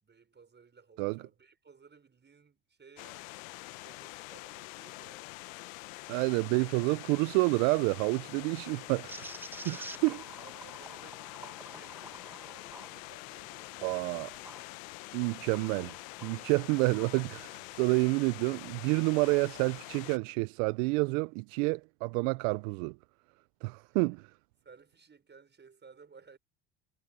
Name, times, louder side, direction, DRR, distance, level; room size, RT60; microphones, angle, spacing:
voice 1, 0.0-5.2 9.1-9.7 10.4-14.2 23.9-24.0 24.6-26.4, right 5 dB, 25° right, 5.9 m, -58 dB
sound 1, 3.0-20.2, left 24 dB, 80° left, 1.0 m, -46 dB
voice 2, 6.1-9.3 9.6-10.2 13.8-14.3 15.1-15.9 16.2-22.9 23.6-24.2, right 29 dB, 75° right, 0.6 m, -29 dB
sound 2, 9.1-14.6 15.1-16.4, right 1 dB, 5° right, 1.5 m, -49 dB
supercardioid pair, 85°, 39 cm